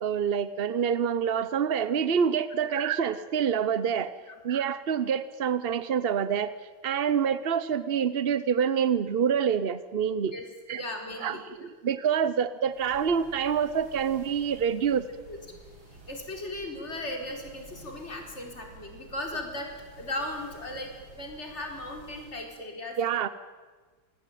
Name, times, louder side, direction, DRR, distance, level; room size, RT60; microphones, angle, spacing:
voice 1, 0.0-4.1 4.4-6.5 6.8-10.4 10.7-10.8 11.2-15.0 23.0-23.3, right 7 dB, 55° right, 14 dB, 0.6 m, -27 dB
voice 2, 10.7-11.7 15.3-15.4 15.9-19.7 20.0-23.0, left 1 dB, 30° left, 2 dB, 4.6 m, -37 dB
sound 1, 12.7-22.5, right 2 dB, 75° right, 5.6 m, -52 dB
28.0 x 19.0 x 9.2 m, 1.4 s
omnidirectional pair, 2.2 m